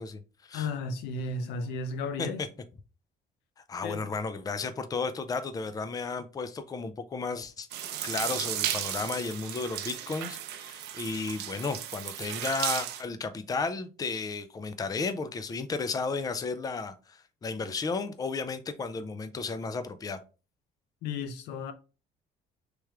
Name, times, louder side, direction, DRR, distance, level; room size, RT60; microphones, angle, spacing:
voice 1, 0.0-0.7 2.2-2.5 3.7-20.2, left 4 dB, 20° left, 0.4 m, -34 dB
voice 2, 0.5-2.4 3.8-4.1 21.0-21.7, left 3 dB, 85° left, 0.6 m, -34 dB
sound 1, 7.7-13.0, right 11 dB, 85° right, 0.5 m, -35 dB
3.3 x 3.0 x 3.5 m
cardioid pair, 110°, 17 cm